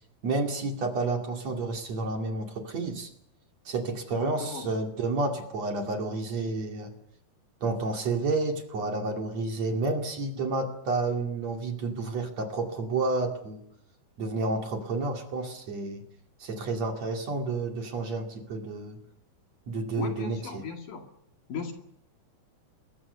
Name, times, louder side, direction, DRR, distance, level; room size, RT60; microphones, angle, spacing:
voice 1, 0.2-3.1 3.7-6.9 7.6-13.6 14.2-16.0 16.4-19.0 19.7-20.6, right 3 dB, 45° right, 3 dB, 3.3 m, -30 dB
voice 2, 4.1-4.7 20.0-21.1 21.5-21.7, left 5 dB, 55° left, 4 dB, 3.6 m, -37 dB
27.0 x 22.0 x 6.8 m, 0.75 s
omnidirectional pair, 4.5 m